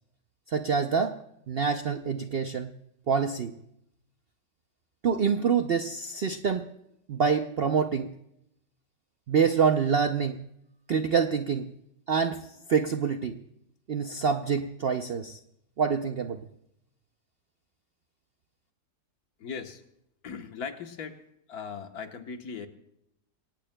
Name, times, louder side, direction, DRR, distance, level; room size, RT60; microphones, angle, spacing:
voice 1, 0.5-1.2 1.5-2.7 3.1-3.6 5.0-6.7 7.1-8.1 9.3-10.4 10.9-11.7 12.1-13.4 13.9-15.4 15.8-16.4, right 6 dB, 75° right, 7 dB, 0.5 m, -26 dB
voice 2, 19.4-19.8 20.2-21.2 21.5-22.7, left 6 dB, 65° left, 6 dB, 1.6 m, -38 dB
24.5 x 17.5 x 2.2 m, 0.79 s
omnidirectional pair, 1.8 m